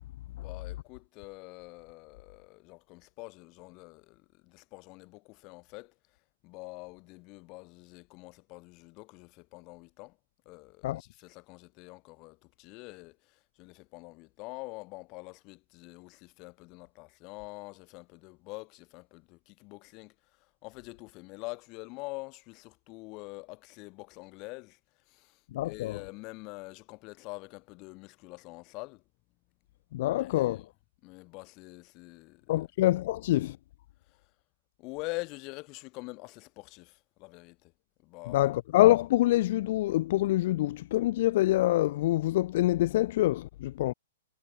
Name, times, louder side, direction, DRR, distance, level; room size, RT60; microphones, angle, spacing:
voice 1, 0.3-5.9 6.4-10.2 10.5-20.1 20.6-24.8 25.1-29.0 30.2-30.7 31.0-32.6 34.8-37.7 38.0-38.5, left 26 dB, 35° left, 4.0 m, -45 dB
voice 2, 25.5-26.0 29.9-30.6 32.5-33.6 38.3-43.9, left 15 dB, 50° left, 2.1 m, -25 dB
hypercardioid pair, 145°, 0 cm